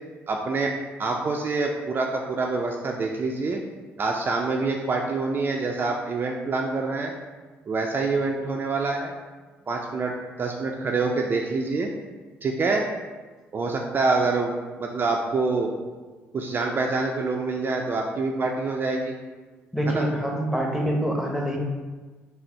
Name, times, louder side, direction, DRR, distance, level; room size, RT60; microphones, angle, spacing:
voice 1, 0.3-0.7 1.0-3.6 4.0-7.1 7.7-9.1 9.7-10.1 10.4-11.9 12.4-12.9 13.5-15.7 16.3-19.1 19.9-20.0, right 3 dB, 40° right, 1 dB, 0.4 m, -26 dB
voice 2, 19.7-21.6, right 1 dB, ahead, 0 dB, 0.9 m, -25 dB
4.0 x 2.0 x 4.4 m, 1.3 s
supercardioid pair, 65°, 5 cm